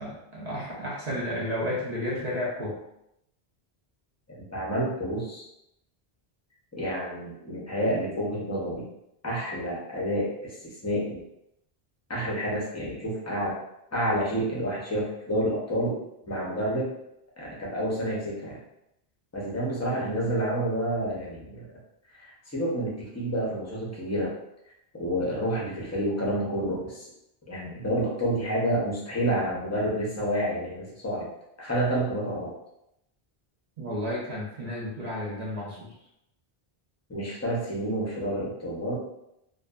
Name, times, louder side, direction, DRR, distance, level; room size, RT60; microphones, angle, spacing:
voice 1, 0.0-2.8 33.8-35.9, left 1 dB, 50° right, -5 dB, 0.6 m, -32 dB
voice 2, 4.3-5.4 6.7-8.9 9.2-11.2 12.1-13.5 13.9-16.0 16.3-16.9 17.4-18.6 19.3-21.6 22.2-24.3 24.9-27.1 27.5-31.3 31.6-32.5 37.1-38.9, right 1 dB, 20° left, -5 dB, 0.6 m, -29 dB
2.5 x 2.4 x 2.3 m, 0.81 s
omnidirectional pair, 1.0 m